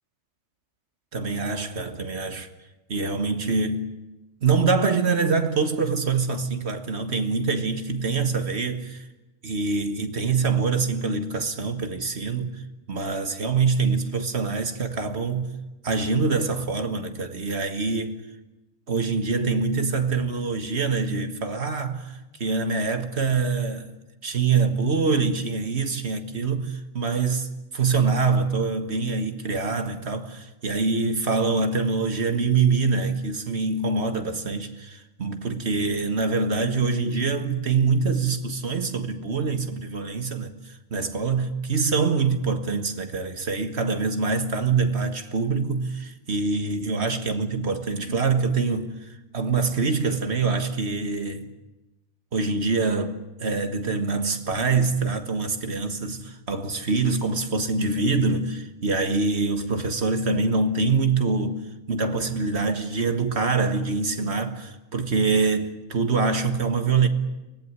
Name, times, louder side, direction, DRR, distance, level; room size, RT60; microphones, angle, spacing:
voice 1, 1.1-2.5 2.9-3.9 4.4-8.8 9.4-12.6 12.9-15.5 15.8-18.2 18.9-23.9 24.2-51.5 52.3-61.6 61.9-67.1, right 4 dB, 55° right, 1.9 m, -25 dB
24.0 x 19.0 x 9.7 m
omnidirectional pair, 1.3 m